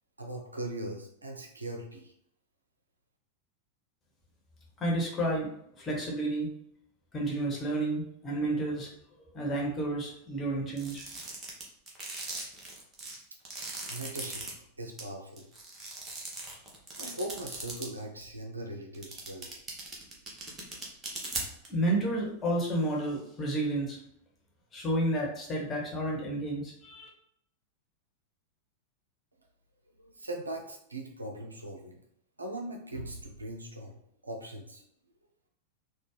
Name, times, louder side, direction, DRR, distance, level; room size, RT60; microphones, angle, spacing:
voice 1, 0.2-2.1 13.9-15.5 17.0-19.5 30.0-32.0 32.4-34.0 34.2-34.9, right 1 dB, 80° right, 2 dB, 0.6 m, -40 dB
voice 2, 4.8-5.5 5.8-6.5 7.1-8.9 9.3-11.0 21.7-24.0 24.7-27.1, right 1 dB, 20° left, -2 dB, 1.3 m, -31 dB
sound 1, 10.8-14.5 15.0-15.1 15.4-17.9 18.2-18.3 18.9-21.7, right 2 dB, 25° right, 1.1 m, -39 dB
4.3 x 2.3 x 3.2 m, 0.71 s
figure-of-eight pair, 90°, 0 cm